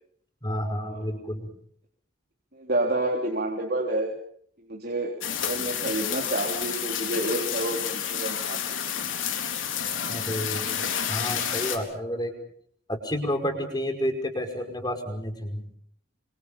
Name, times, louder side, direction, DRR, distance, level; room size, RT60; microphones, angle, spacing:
voice 1, 0.4-1.5 10.0-10.8 11.1-12.3 12.9-15.6, equal, 20° left, 5 dB, 5.3 m, -30 dB
voice 2, 2.5-4.1 4.7-8.6 8.9-9.0, right 1 dB, 50° right, -1 dB, 3.6 m, -29 dB
sound 1, 5.2-11.8, left 8 dB, 80° left, 4.2 m, -30 dB
27.0 x 26.0 x 5.6 m, 0.62 s
head